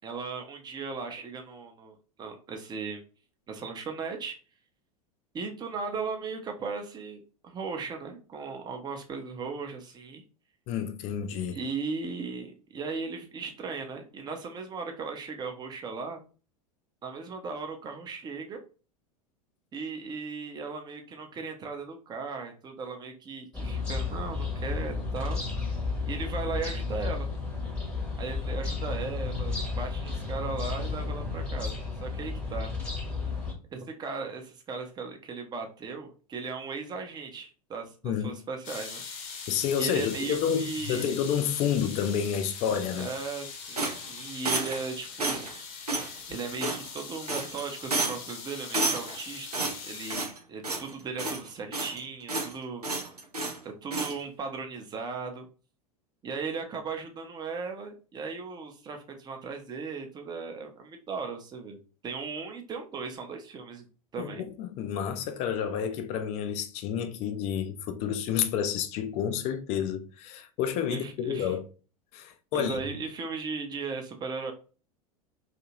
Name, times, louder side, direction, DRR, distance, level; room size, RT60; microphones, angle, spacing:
voice 1, 0.0-3.0 3.5-4.4 5.3-10.2 11.5-16.2 17.0-18.6 19.7-25.4 26.1-27.3 28.2-32.7 33.7-39.0 39.4-39.5 39.8-41.1 42.9-45.5 46.3-52.8 53.6-55.5 56.2-61.8 62.0-63.9 64.1-64.4 70.9-71.5 72.5-74.5, right 4 dB, 20° right, 0.6 m, -37 dB
voice 2, 10.7-11.6 38.0-38.4 39.5-43.1 64.2-71.6 72.1-72.8, left 8 dB, 35° left, 0.4 m, -30 dB
sound 1, 23.5-33.5, left 4 dB, 5° left, 0.9 m, -32 dB
sound 2, 38.6-50.2, left 5 dB, 55° left, 0.8 m, -42 dB
sound 3, 43.8-44.9 45.2-45.6 45.9-46.1 46.6-47.0 47.3-47.6 47.9-48.3 48.7-49.2 49.5-50.4 50.6-50.9 51.2-52.0 52.3-52.5 52.8-53.6 53.9-54.1, right 2 dB, 90° right, 0.6 m, -30 dB
2.7 x 2.5 x 2.9 m
figure-of-eight pair, 85°, 19 cm